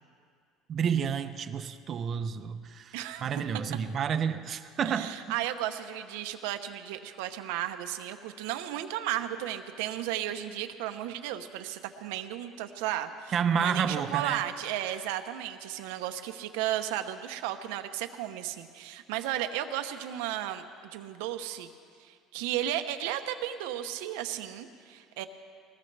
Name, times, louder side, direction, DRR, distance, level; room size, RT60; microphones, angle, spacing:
voice 1, 0.7-5.3 13.3-14.4, right 7 dB, 35° right, 10 dB, 0.7 m, -30 dB
voice 2, 2.9-3.3 4.8-20.6 20.9-21.7 22.0-25.3, right 12 dB, 90° right, 8 dB, 0.9 m, -34 dB
21.0 x 19.5 x 3.4 m, 2.2 s
cardioid pair, 135°, 0 cm